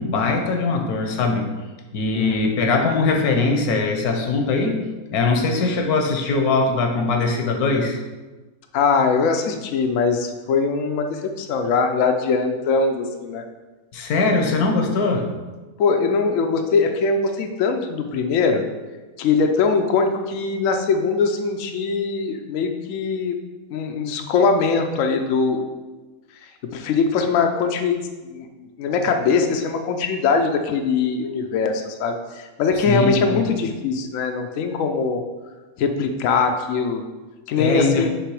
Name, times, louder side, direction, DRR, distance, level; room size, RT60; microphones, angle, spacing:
voice 1, 0.0-1.4 1.9-4.8 5.1-8.0 13.9-15.3 32.9-33.4 37.6-38.1, left 3 dB, 90° left, 3 dB, 1.3 m, -21 dB
voice 2, 8.7-13.4 15.8-18.6 19.2-23.4 23.7-25.6 26.7-28.5 28.8-35.2 35.8-37.0 37.5-38.1, left 4 dB, 70° left, 5 dB, 0.9 m, -21 dB
6.8 x 3.3 x 4.7 m, 1.2 s
omnidirectional pair, 1.5 m